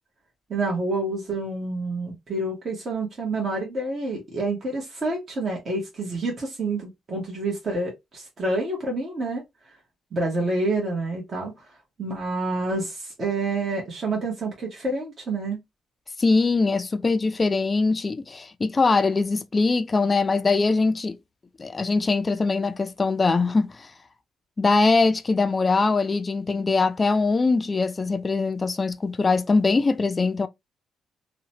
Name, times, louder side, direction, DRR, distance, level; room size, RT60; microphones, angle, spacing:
voice 1, 0.5-9.8 10.1-11.7 12.0-15.6, right 2 dB, 45° right, 1.0 m, -28 dB
voice 2, 16.2-21.2 21.6-23.9 24.6-30.5, left 3 dB, 30° left, 0.3 m, -22 dB
2.8 x 2.1 x 2.7 m
cardioid pair, 90°, 0 cm